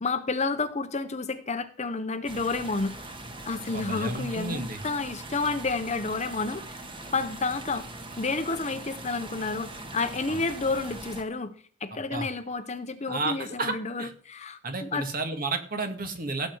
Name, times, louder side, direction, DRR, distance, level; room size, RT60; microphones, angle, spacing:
voice 1, 0.0-2.9 3.5-6.8 7.1-7.9 8.2-11.5 11.8-15.1, left 3 dB, 35° left, 10 dB, 1.0 m, -30 dB
sound 1, 2.3-11.2, right 2 dB, 25° right, 1.6 m, -41 dB
voice 2, 3.7-4.8 10.3-10.5 11.9-12.3 13.1-14.1 14.6-16.5, right 3 dB, 45° right, 6 dB, 1.9 m, -32 dB
16.5 x 7.9 x 4.6 m, 0.42 s
head